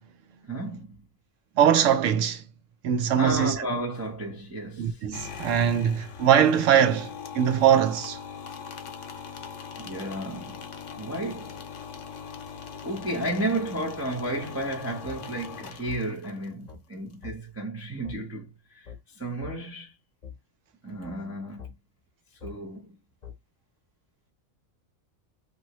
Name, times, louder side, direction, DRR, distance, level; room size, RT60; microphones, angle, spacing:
voice 1, 0.4-1.0 3.1-5.1 9.8-10.6 11.0-11.6 12.7-18.9 19.2-19.9 20.8-21.7 22.4-23.0, right 1 dB, 25° right, 0.3 m, -33 dB
voice 2, 1.6-2.4 2.8-3.6 4.8-8.2, right 9 dB, 75° right, 0.9 m, -22 dB
sound 1, 5.1-16.5, left 7 dB, 70° left, 0.9 m, -41 dB
sound 2, 15.0-15.2 15.9-16.0 16.7-16.8 17.2-17.4 18.0-18.2 18.9-19.0 19.4-19.6 20.2-20.4 21.0-21.2 21.6-21.7 22.4-22.5 23.2-23.4, left 8 dB, 40° left, 0.7 m, -41 dB
2.8 x 2.7 x 2.8 m
omnidirectional pair, 1.4 m